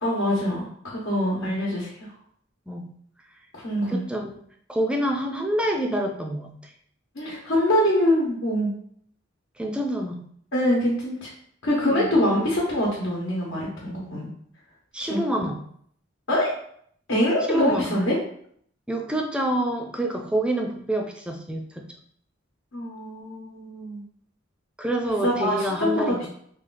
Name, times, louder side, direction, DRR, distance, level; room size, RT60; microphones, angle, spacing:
voice 1, 0.0-2.1 3.5-4.0 7.1-8.7 10.5-11.3 11.6-14.3 15.0-15.5 16.3-16.5 17.1-18.2 22.7-24.0 25.2-26.1, left 1 dB, 75° left, -5 dB, 1.0 m, -24 dB
voice 2, 3.9-4.4 4.7-6.7 9.6-10.2 11.9-12.1 14.9-15.6 17.5-18.0 18.9-21.8 24.8-26.3, right 1 dB, 5° right, 2 dB, 0.4 m, -27 dB
3.2 x 2.4 x 3.8 m, 0.64 s
head